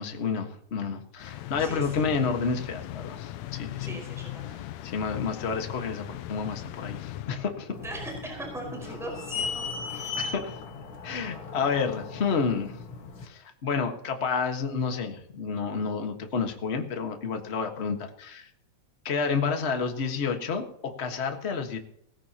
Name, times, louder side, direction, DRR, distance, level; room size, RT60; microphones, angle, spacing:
voice 1, 0.0-4.0 4.8-7.7 10.2-10.5 11.0-12.8 13.2-18.5 19.0-21.8, left 5 dB, 35° left, 5 dB, 1.1 m, -30 dB
sound 1, 1.2-7.9, left 14 dB, 80° left, 1.8 m, -39 dB
voice 2, 1.6-2.1 3.8-4.6 7.8-9.6 9.9-10.1, right 1 dB, ahead, 0 dB, 4.7 m, -39 dB
sound 2, 7.7-13.3, left 5 dB, 50° left, 2.1 m, -37 dB
18.0 x 15.0 x 2.9 m, 0.72 s
omnidirectional pair, 3.3 m